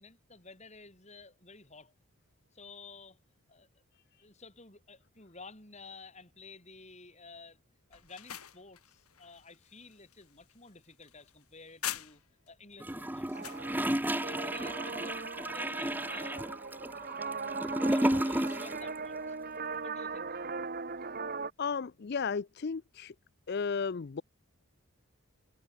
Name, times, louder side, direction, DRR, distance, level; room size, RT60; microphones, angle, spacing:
voice 1, 0.0-1.9 2.5-3.2 3.5-3.7 4.2-7.6 7.9-12.2 12.5-13.5 14.0-16.4 16.9-17.0 17.6-19.4 19.8-20.3, left 3 dB, 30° left, 6.1 m, -53 dB
sound 1, 7.9-12.5 12.9-13.7, left 11 dB, 85° left, 3.8 m, -44 dB
Gurgling / Toilet flush, 12.8-18.9 19.1-19.2, right 1 dB, 10° right, 1.2 m, -32 dB
sound 2, 13.3-21.5, right 4 dB, 40° right, 1.2 m, -39 dB
voice 2, 21.6-23.1 23.5-24.2, left 5 dB, 45° left, 0.4 m, -34 dB
head